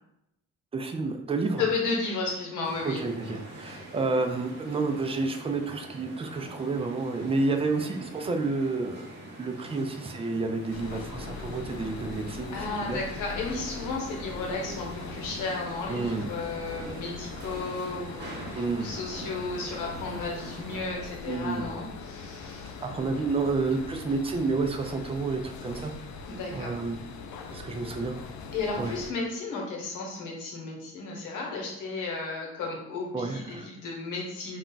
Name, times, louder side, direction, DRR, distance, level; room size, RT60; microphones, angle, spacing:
voice 1, 0.7-1.6 2.8-9.1 9.4-13.0 15.9-16.3 18.5-18.9 21.3-21.7 22.8-25.9 26.5-27.0 27.5-28.1 28.8-28.9 33.1-33.7, right 3 dB, 20° right, 4 dB, 0.4 m, -30 dB
voice 2, 1.6-3.0 3.6-3.8 12.5-22.8 26.3-26.8 28.5-34.6, left 3 dB, 90° left, -1 dB, 0.9 m, -33 dB
sound 1, 2.6-20.9, right 2 dB, 35° right, 0.9 m, -44 dB
sound 2, 10.7-29.1, left 5 dB, 70° left, 0.4 m, -41 dB
2.3 x 2.1 x 3.8 m, 0.86 s
cardioid pair, 90°, 30 cm